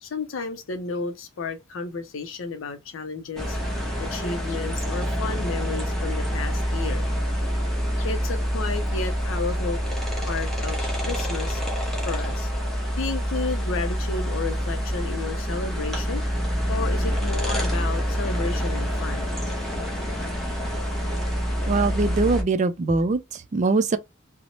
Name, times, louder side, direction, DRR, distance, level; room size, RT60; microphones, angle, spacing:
voice 1, 0.0-3.6 4.0-7.1 8.0-9.8 10.2-11.6 12.0-12.5 13.0-16.2 16.7-19.3, left 4 dB, 75° left, 0.5 m, -32 dB
sound 1, 3.4-22.4, equal, ahead, 0.7 m, -26 dB
voice 2, 21.6-24.0, right 3 dB, 35° right, 0.3 m, -22 dB
2.6 x 2.0 x 2.8 m
head